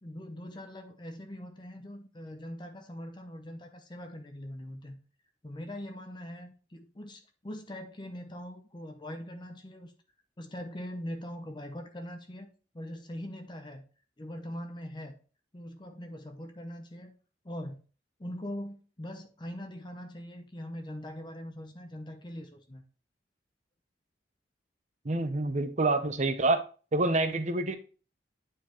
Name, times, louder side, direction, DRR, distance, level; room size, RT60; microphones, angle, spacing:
voice 1, 0.0-5.0 5.4-9.9 10.4-12.5 12.7-13.8 14.2-15.2 15.5-17.1 17.4-17.8 18.2-22.8, equal, 25° left, 0.7 m, -42 dB
voice 2, 25.0-26.6 26.9-27.8, right 2 dB, 40° right, 0.7 m, -27 dB
9.2 x 4.6 x 3.0 m
head